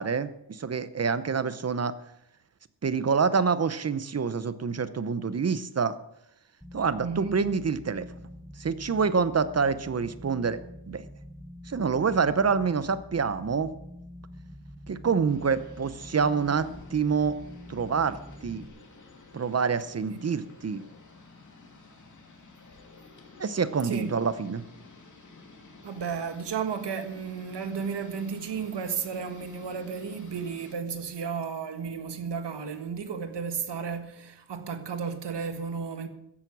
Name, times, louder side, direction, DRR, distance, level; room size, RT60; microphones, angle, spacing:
voice 1, 0.0-1.9 2.8-5.9 6.7-8.1 8.6-10.6 10.9-11.0 11.7-13.7 14.9-17.4 17.7-18.6 19.3-20.8 23.4-24.6, right 5 dB, 35° right, 0.8 m, -27 dB
sound 1, 6.6-18.7, equal, ahead, 1.1 m, -45 dB
voice 2, 7.0-7.4 20.1-20.2 23.8-24.2 25.8-36.1, right 6 dB, 65° right, 1.5 m, -33 dB
sound 2, 15.3-30.7, left 3 dB, 40° left, 2.7 m, -51 dB
15.0 x 11.0 x 6.1 m
wide cardioid pair, 155°, 44 cm